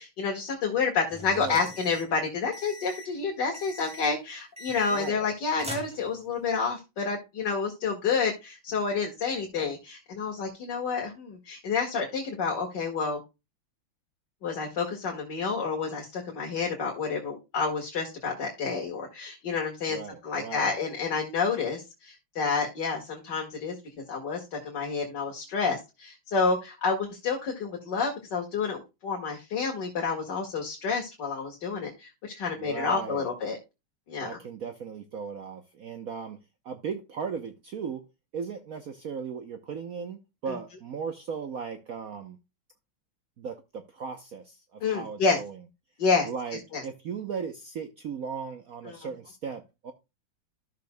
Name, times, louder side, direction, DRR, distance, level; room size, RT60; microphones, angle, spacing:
voice 1, 0.0-13.2 14.4-20.0 20.2-23.8 24.1-33.6 34.1-34.4 44.8-45.4 46.0-46.3 46.7-46.8 48.9-49.0, left 5 dB, 60° left, 2.3 m, -29 dB
sound 1, 1.1-2.1 2.5-3.1 3.5-4.2 4.6-5.3 5.6-6.5, equal, 5° right, 2.0 m, -42 dB
voice 2, 4.9-5.2 19.9-20.7 32.6-33.3 34.2-36.4 36.6-38.0 38.3-42.4 43.4-45.6 46.2-49.9, right 6 dB, 55° right, 1.1 m, -37 dB
13.0 x 6.7 x 2.2 m
omnidirectional pair, 2.2 m